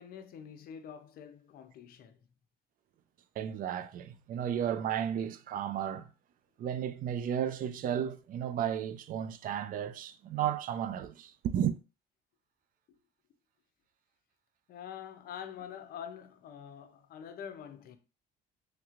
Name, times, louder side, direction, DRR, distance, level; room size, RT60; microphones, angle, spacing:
voice 1, 0.0-2.2 14.7-18.0, left 8 dB, 60° left, 0.6 m, -46 dB
voice 2, 3.4-6.1 6.6-11.8, right 9 dB, 55° right, 0.4 m, -33 dB
3.2 x 2.9 x 2.4 m
cardioid pair, 110°, 17 cm